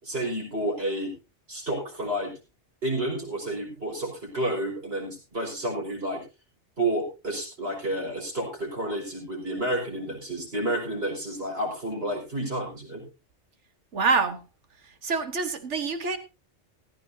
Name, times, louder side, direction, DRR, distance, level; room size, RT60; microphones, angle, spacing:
voice 1, 0.0-1.1 1.5-2.3 2.8-6.2 6.8-13.0, right 1 dB, 55° right, 5.8 m, -30 dB
voice 2, 13.9-14.4 15.0-16.2, right 4 dB, 70° right, 1.7 m, -26 dB
16.5 x 14.0 x 2.8 m
omnidirectional pair, 1.3 m